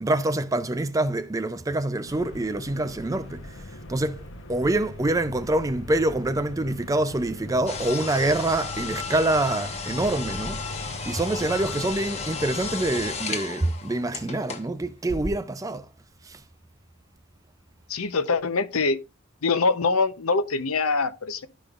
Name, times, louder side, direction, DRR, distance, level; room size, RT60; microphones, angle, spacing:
voice 1, 0.0-3.5 3.9-4.2 4.5-10.6 11.1-15.9 16.3-16.4, right 2 dB, 15° right, 0.4 m, -26 dB
sound 1, 2.1-13.2, left 2 dB, 60° left, 0.9 m, -40 dB
sound 2, 7.7-14.7 15.1-15.3, left 4 dB, 30° left, 1.0 m, -34 dB
voice 2, 17.9-19.0 19.4-21.5, left 4 dB, 85° left, 0.7 m, -24 dB
12.5 x 5.1 x 2.4 m
head